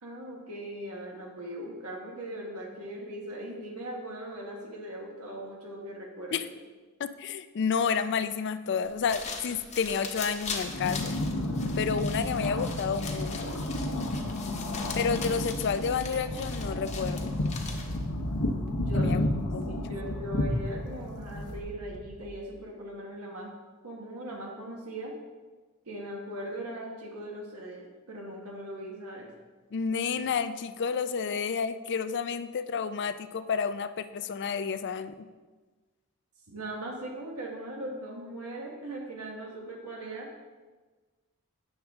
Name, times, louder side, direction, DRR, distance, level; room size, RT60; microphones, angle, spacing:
voice 1, 0.0-6.5 18.7-19.2 19.6-23.5 23.8-25.1 25.9-29.3 31.2-31.4 36.5-40.3, right 1 dB, 80° right, -1 dB, 1.3 m, -39 dB
voice 2, 7.0-11.1 11.8-13.6 15.0-17.3 18.9-19.3 19.5-19.8 29.7-35.3, left 6 dB, 50° left, 12 dB, 0.4 m, -30 dB
sound 1, 8.8-18.1, left 4 dB, 30° left, 0.9 m, -41 dB
sound 2, 10.6-21.6, left 1 dB, 75° left, 1.0 m, -31 dB
sound 3, 14.9-22.4, right 1 dB, 40° right, 1.0 m, -45 dB
9.4 x 6.3 x 3.6 m, 1.3 s
head